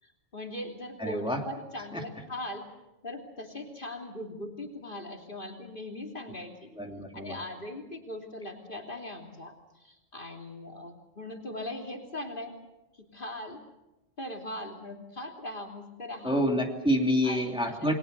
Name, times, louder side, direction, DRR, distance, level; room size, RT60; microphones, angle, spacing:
voice 1, 0.0-2.6 3.0-6.7 7.1-12.5 12.9-13.6 14.2-16.4 17.2-17.9, left 1 dB, 40° left, 2 dB, 3.2 m, -40 dB
voice 2, 1.0-1.4 1.9-2.0 6.7-7.4 16.2-17.9, equal, 5° right, 1 dB, 2.8 m, -27 dB
29.0 x 22.0 x 6.7 m, 0.95 s
omnidirectional pair, 1.3 m